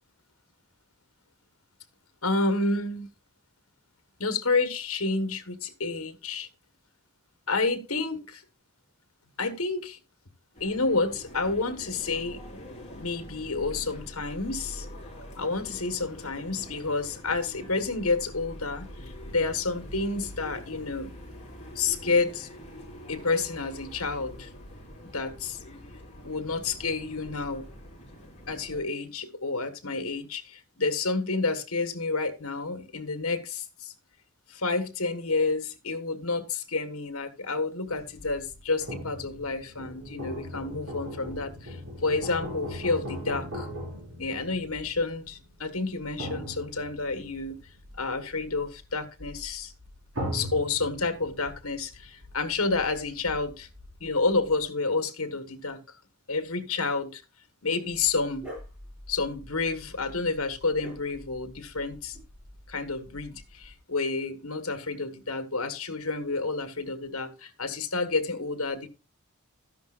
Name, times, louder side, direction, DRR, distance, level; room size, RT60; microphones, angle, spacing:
voice 1, 2.2-3.1 4.2-6.5 7.5-8.4 9.4-10.0 10.6-12.4 12.9-14.9 15.4-21.1 21.7-22.5 23.1-24.5 25.1-25.6 26.2-27.7 28.5-33.9 34.5-43.7 44.2-47.6 48.0-49.7 50.3-53.7 54.0-55.8 56.3-57.2 57.6-58.5 59.1-62.2 62.7-68.9, left 3 dB, 70° left, 1.5 m, -29 dB
sound 1, 10.5-28.8, equal, 30° left, 4.1 m, -44 dB
sound 2, 37.9-54.6, equal, 65° right, 5.2 m, -40 dB
Dog, 57.9-63.8, left 1 dB, 5° right, 7.1 m, -48 dB
13.0 x 10.5 x 2.5 m
head